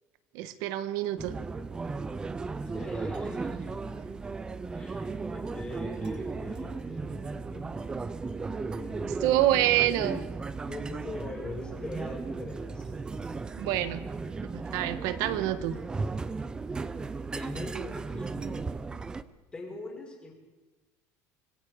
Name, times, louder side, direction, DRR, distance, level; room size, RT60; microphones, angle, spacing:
voice 1, 0.3-1.3 9.2-10.2 13.6-14.0 14.4-15.8, right 13 dB, 65° right, 12 dB, 1.5 m, -27 dB
sound 1, 1.2-19.2, right 4 dB, 10° right, 0.6 m, -36 dB
voice 2, 2.6-3.9 4.7-7.7 8.7-9.2 10.6-13.0 17.3-18.7 19.5-20.3, left 2 dB, 15° left, 0 dB, 4.6 m, -42 dB
26.0 x 20.5 x 4.9 m, 1.2 s
cardioid pair, 175°, 7 cm